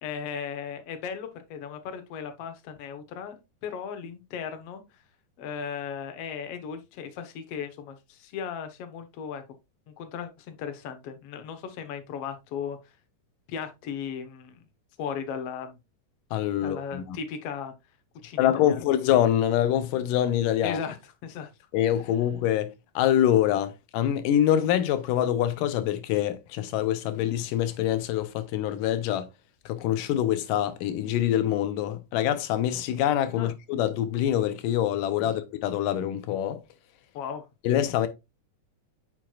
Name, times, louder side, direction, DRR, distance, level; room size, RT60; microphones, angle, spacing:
voice 1, 0.0-4.8 5.4-9.4 9.9-12.8 13.5-14.6 15.0-15.8 16.6-17.7 18.2-18.9 20.6-21.5 33.4-33.5 37.1-37.5, left 7 dB, 60° left, 1.8 m, -36 dB
voice 2, 16.3-17.2 18.4-20.8 21.7-29.3 29.7-36.6 37.6-38.1, left 11 dB, 90° left, 2.3 m, -25 dB
8.8 x 6.2 x 2.4 m
omnidirectional pair, 3.8 m